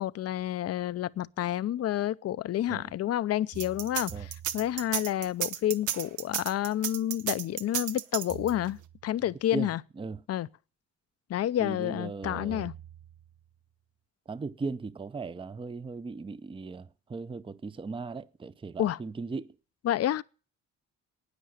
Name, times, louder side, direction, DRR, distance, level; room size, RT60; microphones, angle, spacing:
voice 1, 0.0-9.8 10.3-10.5 11.3-12.7 18.8-19.0 19.8-20.2, left 12 dB, 55° left, 0.6 m, -29 dB
sound 1, 0.9-1.0 3.5-5.1 8.3-9.4 12.2-13.6, right 9 dB, 45° right, 1.5 m, -46 dB
sound 2, 3.6-8.7, right 11 dB, 80° right, 0.9 m, -32 dB
voice 2, 9.2-9.7 10.0-10.2 11.6-12.7 14.3-19.5, right 4 dB, 15° right, 0.6 m, -38 dB
13.0 x 9.3 x 6.5 m
cardioid pair, 90°, 30 cm